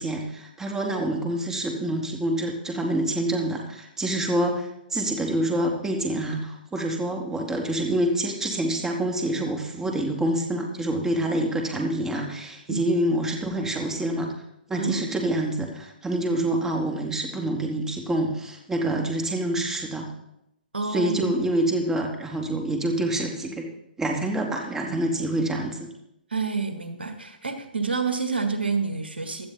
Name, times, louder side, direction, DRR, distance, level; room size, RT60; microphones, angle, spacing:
voice 1, 0.0-14.3 14.7-20.1 20.9-23.7 24.0-25.8, right 1 dB, 10° right, 1 dB, 2.5 m, -26 dB
voice 2, 14.8-15.1 20.7-21.3 26.3-29.5, right 4 dB, 85° right, 7 dB, 1.8 m, -28 dB
16.5 x 12.0 x 4.2 m, 0.81 s
figure-of-eight pair, 125°, 5 cm